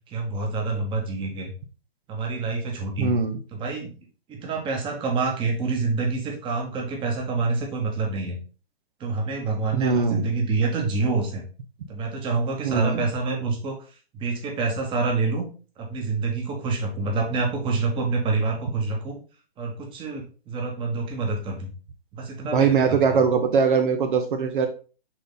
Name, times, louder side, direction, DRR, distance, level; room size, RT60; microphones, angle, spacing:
voice 1, 0.1-1.5 2.1-3.1 3.5-3.9 4.3-8.4 9.0-11.4 11.9-13.8 14.1-15.4 15.8-19.2 19.6-21.7 22.1-23.0, right 3 dB, 15° right, 1 dB, 1.4 m, -27 dB
voice 2, 3.0-3.4 9.7-10.3 12.6-13.0 22.5-24.7, right 6 dB, 55° right, 6 dB, 1.0 m, -21 dB
6.2 x 3.9 x 4.1 m, 0.37 s
hypercardioid pair, 130°, 31 cm